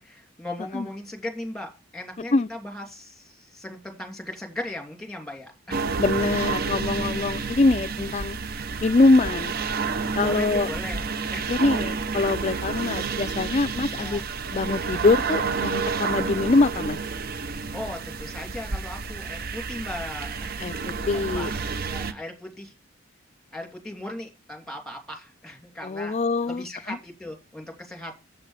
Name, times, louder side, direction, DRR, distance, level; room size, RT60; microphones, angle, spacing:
voice 1, 0.0-5.8 10.1-11.0 11.3-11.5 13.9-14.2 17.7-22.7 23.5-26.2 26.5-28.2, left 1 dB, 5° left, 2.7 m, -38 dB
sound 1, 5.7-22.1, right 5 dB, 50° right, 0.7 m, -30 dB
voice 2, 6.0-8.4 8.8-9.5 10.1-10.7 11.5-14.2 14.5-17.0 20.6-20.7 21.1-21.5 25.8-27.0, left 3 dB, 35° left, 0.4 m, -23 dB
8.7 x 7.9 x 4.9 m
head